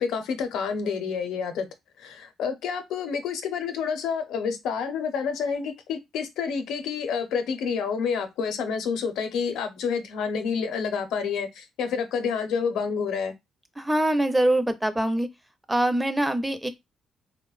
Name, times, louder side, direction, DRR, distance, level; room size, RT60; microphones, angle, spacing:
voice 1, 0.0-1.7 2.0-13.3, left 6 dB, 85° left, 0.6 m, -28 dB
voice 2, 13.8-15.3 15.7-16.7, right 1 dB, 10° right, 0.5 m, -23 dB
3.3 x 2.1 x 2.3 m
cardioid pair, 90°, 0 cm